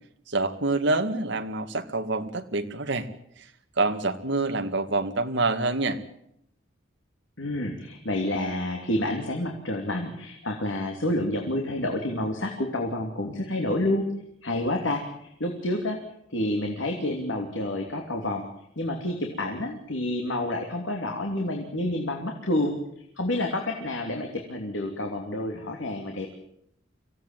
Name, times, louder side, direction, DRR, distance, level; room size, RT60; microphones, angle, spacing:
voice 1, 0.3-3.1 3.8-6.0, right 2 dB, 60° right, 7 dB, 2.0 m, -26 dB
voice 2, 7.4-14.0 14.4-16.0 16.3-18.4 18.8-22.8 23.2-26.3, left 1 dB, 70° left, 2 dB, 3.1 m, -29 dB
25.0 x 17.0 x 9.3 m, 0.77 s
head